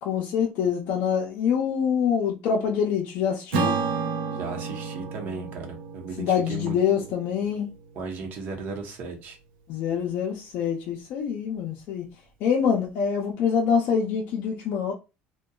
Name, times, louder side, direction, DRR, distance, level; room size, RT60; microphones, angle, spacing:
voice 1, 0.0-3.7 6.2-7.7 9.7-12.1 12.4-14.9, left 7 dB, 60° left, 0.5 m, -25 dB
Acoustic guitar / Strum, 3.5-8.2, right 5 dB, 85° right, 0.7 m, -31 dB
voice 2, 4.3-7.1 7.9-9.4, right 4 dB, 50° right, 0.8 m, -36 dB
2.7 x 2.2 x 2.3 m
cardioid pair, 135°, 4 cm